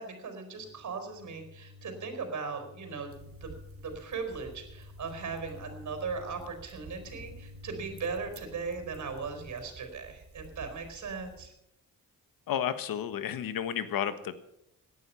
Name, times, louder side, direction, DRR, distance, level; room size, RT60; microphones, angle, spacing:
voice 1, 0.0-3.5 3.8-11.5, right 4 dB, 55° right, 7 dB, 4.4 m, -38 dB
sound 1, 0.5-9.5, left 4 dB, 70° left, 2.7 m, -52 dB
sound 2, 3.1-11.5, right 4 dB, 40° right, 2.4 m, -52 dB
voice 2, 12.5-14.3, left 9 dB, 85° left, 12 dB, 1.4 m, -32 dB
18.0 x 11.0 x 5.7 m, 0.80 s
cardioid pair, 125°, 34 cm